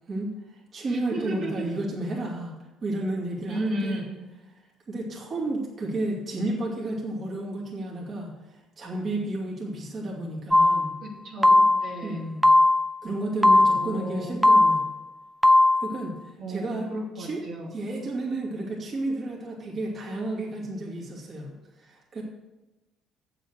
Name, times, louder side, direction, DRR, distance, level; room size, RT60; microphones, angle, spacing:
voice 1, 0.1-2.5 2.8-4.0 4.9-10.9 12.0-12.4 13.0-14.8 15.8-16.9 17.2-17.4 17.7-21.5 21.8-22.2, right 2 dB, 45° right, -3 dB, 2.6 m, -32 dB
voice 2, 0.9-1.7 3.5-4.1 11.0-12.2 13.7-14.3 16.4-17.7, right 1 dB, 65° right, -4 dB, 2.7 m, -35 dB
sound 1, 10.5-11.0 11.4-12.0 12.4-13.0 13.4-14.0 14.4-15.0 15.4-16.0, left 2 dB, ahead, 0.5 m, -18 dB
7.9 x 7.6 x 6.4 m, 1.1 s
cardioid pair, 100°, 0 cm